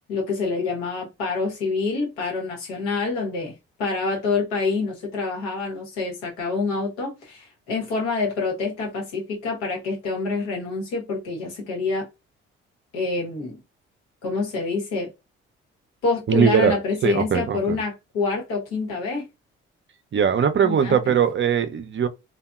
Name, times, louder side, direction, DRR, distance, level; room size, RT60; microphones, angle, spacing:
voice 1, 0.1-12.1 12.9-13.6 14.2-15.1 16.0-19.3 20.6-21.1, left 4 dB, 90° left, 1.1 m, -27 dB
voice 2, 16.3-16.8 17.0-17.8 20.1-22.1, right 7 dB, 40° right, 0.5 m, -20 dB
2.7 x 2.3 x 2.3 m
hypercardioid pair, 50°, 32 cm